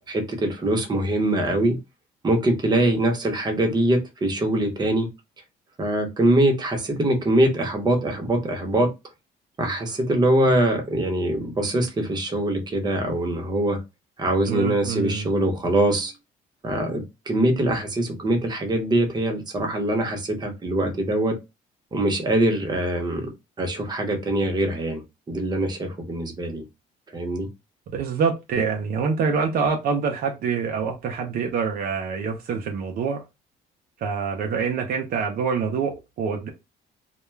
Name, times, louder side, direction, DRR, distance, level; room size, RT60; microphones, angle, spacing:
voice 1, 0.1-1.8 2.2-5.1 5.8-8.9 9.6-13.8 14.2-16.1 16.6-21.3 21.9-23.3 23.6-25.0 25.3-26.6 27.1-27.5, right 1 dB, 25° right, 0.8 m, -23 dB
voice 2, 14.5-15.3 27.9-33.2 34.0-36.5, right 5 dB, 60° right, 0.5 m, -26 dB
2.2 x 2.2 x 3.1 m
cardioid pair, 110°, 17 cm